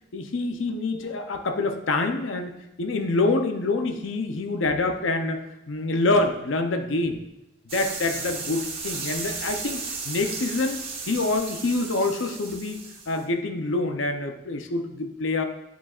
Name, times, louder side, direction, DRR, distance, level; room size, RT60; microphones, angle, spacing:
voice 1, 0.1-7.2 7.7-10.8 11.1-15.4, left 2 dB, 85° left, 6 dB, 0.7 m, -26 dB
sound 1, 7.7-13.2, right 4 dB, 30° right, 1.1 m, -35 dB
9.3 x 7.1 x 2.5 m, 0.90 s
head